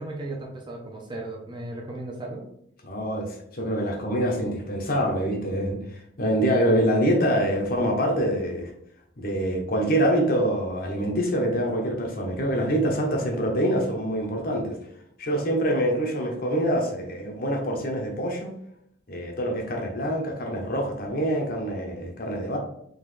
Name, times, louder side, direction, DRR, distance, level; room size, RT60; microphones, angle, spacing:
voice 1, 0.0-2.4, right 2 dB, 25° right, -2 dB, 0.8 m, -36 dB
voice 2, 2.9-8.7 9.2-14.8 15.2-18.5 19.1-22.6, equal, 50° left, 1 dB, 0.9 m, -25 dB
3.9 x 3.1 x 3.2 m, 0.71 s
head